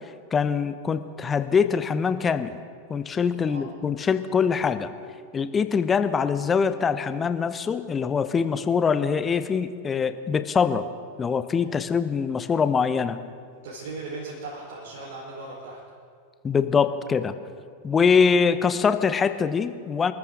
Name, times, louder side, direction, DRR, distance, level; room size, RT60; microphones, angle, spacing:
voice 1, 0.3-2.6 2.9-4.9 5.3-10.9 11.2-13.2 16.4-17.3 17.8-20.1, left 6 dB, 20° left, 12 dB, 0.8 m, -23 dB
voice 2, 13.5-15.8, right 3 dB, 55° right, -5 dB, 4.1 m, -38 dB
26.5 x 14.0 x 3.8 m, 2.1 s
figure-of-eight pair, 90°, 0 cm